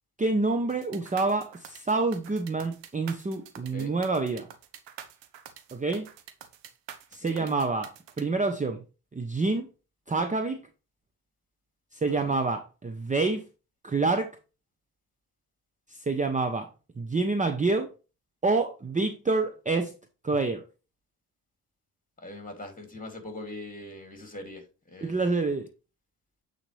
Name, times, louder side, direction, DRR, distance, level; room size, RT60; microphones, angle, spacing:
voice 1, 0.2-4.5 5.7-6.1 7.1-8.8 9.1-9.7 10.1-10.6 11.9-13.4 13.8-14.3 15.9-16.7 17.0-17.9 18.4-19.9 20.2-20.6 25.0-25.7, right 3 dB, 15° right, 0.8 m, -27 dB
sound 1, 0.7-8.2, right 9 dB, 70° right, 1.1 m, -46 dB
voice 2, 12.0-12.4 22.2-25.4, left 2 dB, 20° left, 2.8 m, -42 dB
8.8 x 4.3 x 3.3 m
supercardioid pair, 75°, 45 cm